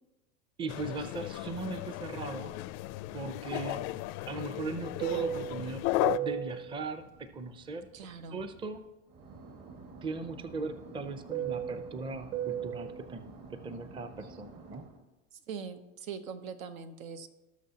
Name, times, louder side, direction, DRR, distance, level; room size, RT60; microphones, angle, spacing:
voice 1, 0.6-2.6 3.1-3.9 4.3-7.9 8.3-8.8 10.0-14.8, right 3 dB, 15° right, 11 dB, 0.5 m, -39 dB
sound 1, 0.7-6.2, left 17 dB, 50° left, 0.4 m, -35 dB
Fixed-wing aircraft airplane, 3.4-8.8 9.1-15.0, right 10 dB, 45° right, 1.9 m, -39 dB
voice 2, 7.9-8.4 14.2-14.3 15.3-17.3, right 6 dB, 80° right, 9 dB, 1.0 m, -42 dB
18.0 x 6.3 x 2.9 m, 1.0 s
supercardioid pair, 110°, 40 cm